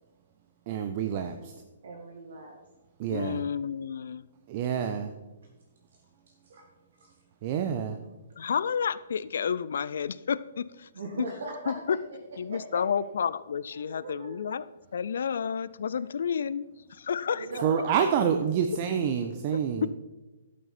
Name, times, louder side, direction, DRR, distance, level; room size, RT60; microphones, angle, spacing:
voice 1, 0.7-1.5 3.0-3.4 4.5-5.1 7.4-8.0 17.6-19.9, right 8 dB, 40° right, 7 dB, 0.7 m, -27 dB
voice 2, 1.8-2.6 6.4-6.7 7.0-7.2 10.9-12.8 13.7-14.6 17.3-18.0, right 2 dB, 65° right, 1 dB, 1.7 m, -40 dB
voice 3, 3.1-4.2 8.4-10.9 11.7-12.0 12.4-14.6 14.9-16.7 16.9-17.5 19.5-19.9, left 7 dB, 60° left, 18 dB, 0.4 m, -30 dB
12.0 x 8.4 x 4.3 m, 1.1 s
figure-of-eight pair, 125°, 0 cm